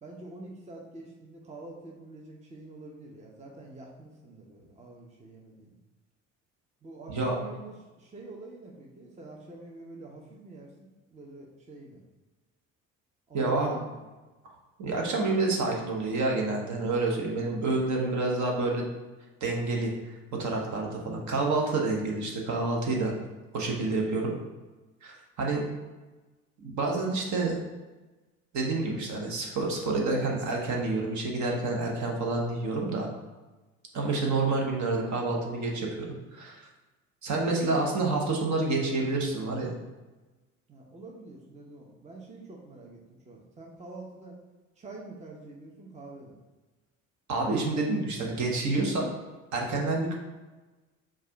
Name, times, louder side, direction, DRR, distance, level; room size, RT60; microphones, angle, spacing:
voice 1, 0.0-5.8 6.8-12.0 13.3-14.0 37.5-37.9 40.7-44.4 44.8-46.4, right 2 dB, 15° right, -1 dB, 0.8 m, -46 dB
voice 2, 13.3-13.7 14.8-18.9 19.4-23.1 23.5-24.3 25.0-25.6 26.6-27.6 28.5-33.1 33.9-35.9 36.3-36.7 37.2-39.8 47.3-49.1 49.5-50.1, right 3 dB, 45° right, 0 dB, 1.1 m, -28 dB
4.7 x 2.5 x 4.4 m, 1.2 s
figure-of-eight pair, 55°, 41 cm